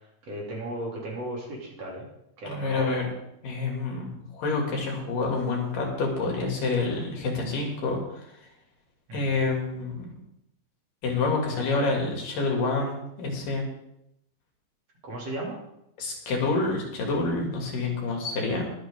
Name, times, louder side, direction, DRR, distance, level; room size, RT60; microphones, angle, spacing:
voice 1, 0.2-2.1 2.4-2.9 9.1-9.5 15.0-15.6, right 1 dB, 45° right, -3 dB, 4.0 m, -35 dB
voice 2, 2.4-3.1 3.4-8.5 9.1-10.1 11.0-13.7 16.0-18.7, left 3 dB, 70° left, 0 dB, 4.2 m, -28 dB
22.5 x 8.3 x 3.8 m, 0.80 s
omnidirectional pair, 4.0 m